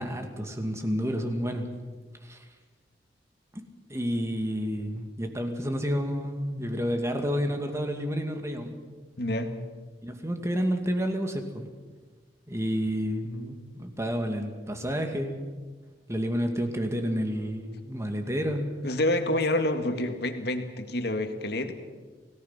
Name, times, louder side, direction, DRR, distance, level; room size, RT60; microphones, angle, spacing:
voice 1, 0.0-1.7 2.2-2.4 3.5-3.6 3.9-8.7 10.0-11.7 12.5-15.4 16.1-19.0, equal, 15° right, 5 dB, 2.4 m, -30 dB
voice 2, 9.2-9.5 18.8-21.7, left 1 dB, 60° left, 6 dB, 2.0 m, -27 dB
28.5 x 18.0 x 5.9 m, 1.4 s
head